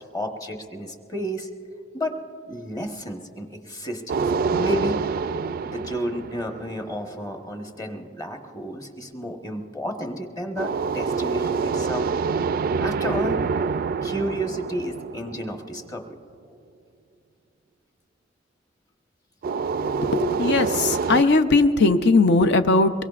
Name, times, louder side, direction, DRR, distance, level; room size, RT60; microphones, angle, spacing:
voice 1, 0.0-1.5 1.9-2.2 2.5-5.0 5.6-12.1 12.5-13.4 14.0-16.2, equal, 20° left, 4 dB, 1.1 m, -32 dB
sound 1, 4.1-7.2 10.6-15.9 19.4-21.2, right 5 dB, 50° right, 0.3 m, -26 dB
voice 2, 19.8-22.9, left 3 dB, 60° left, 10 dB, 0.6 m, -19 dB
23.0 x 22.5 x 2.4 m, 2.4 s
head